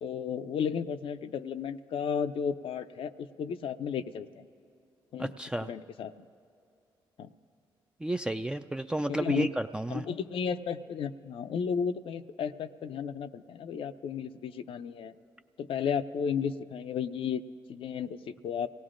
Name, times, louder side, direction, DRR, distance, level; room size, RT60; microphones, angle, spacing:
voice 1, 0.0-4.5 5.1-5.3 5.6-6.1 7.2-7.3 9.1-9.5 9.9-15.1 15.6-17.4 17.7-18.7, left 7 dB, 70° left, 11 dB, 0.5 m, -33 dB
voice 2, 5.2-5.7 8.0-10.0, right 1 dB, 10° right, 7 dB, 0.3 m, -32 dB
25.0 x 17.5 x 2.5 m, 2.6 s
cardioid pair, 65°, 10 cm